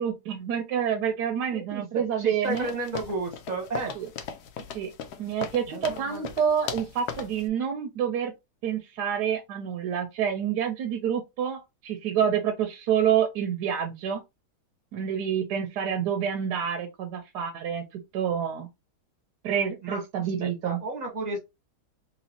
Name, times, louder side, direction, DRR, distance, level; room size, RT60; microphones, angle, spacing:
voice 1, 0.0-2.7 4.0-4.1 4.7-4.9 5.2-8.3 8.6-14.2 14.9-17.8 18.1-18.7 19.4-20.8, right 8 dB, 80° right, 1.2 m, -28 dB
voice 2, 1.5-4.3 5.7-6.5 19.8-21.4, right 2 dB, 30° right, 1.0 m, -34 dB
sound 1, 2.5-7.4, left 7 dB, 75° left, 1.1 m, -38 dB
3.1 x 3.0 x 2.7 m
omnidirectional pair, 1.8 m